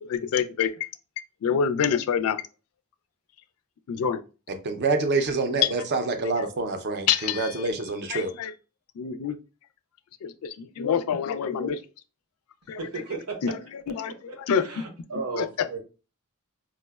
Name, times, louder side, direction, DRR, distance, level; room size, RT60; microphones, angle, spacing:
voice 1, 0.0-0.9 1.4-2.4 3.9-4.2 5.6-5.7 6.4-6.5 7.1-7.7 8.1-8.5 9.0-9.4 10.2-11.8 12.7-12.9 13.4-13.5 14.0-14.6 15.3-15.5, left 7 dB, 70° left, 0.3 m, -26 dB
voice 2, 4.6-8.3, right 3 dB, 50° right, 0.5 m, -26 dB
voice 3, 12.8-13.5 14.3-15.8, right 4 dB, 90° right, 0.8 m, -35 dB
4.6 x 2.1 x 2.2 m
head